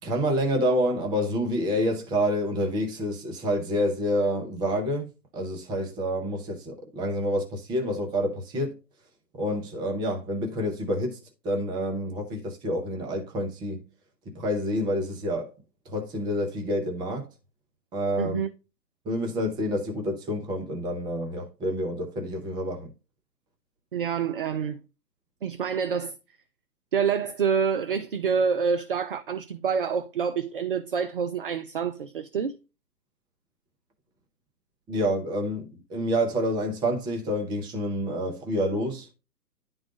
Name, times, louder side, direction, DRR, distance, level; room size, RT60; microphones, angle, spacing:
voice 1, 0.0-8.8 9.3-11.2 11.4-13.8 14.3-15.5 15.9-17.3 17.9-18.4 19.0-22.9 34.9-39.1, equal, 10° right, 0.7 m, -28 dB
voice 2, 18.2-18.5 23.9-24.8 25.4-26.1 26.9-32.6, right 6 dB, 35° right, 0.4 m, -27 dB
10.5 x 3.9 x 3.9 m
figure-of-eight pair, 125°, 49 cm